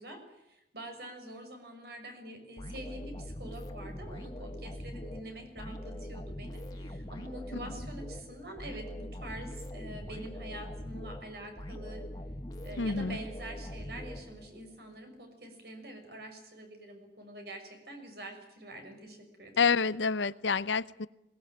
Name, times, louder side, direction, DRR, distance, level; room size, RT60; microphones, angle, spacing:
voice 1, 0.0-12.0 12.6-19.7, right 1 dB, 60° right, 5 dB, 6.1 m, -45 dB
sound 1, 2.6-14.8, left 1 dB, 20° left, 1.8 m, -42 dB
voice 2, 12.8-13.2 19.6-21.1, left 5 dB, 85° left, 17 dB, 0.8 m, -28 dB
22.0 x 19.5 x 9.1 m, 0.86 s
head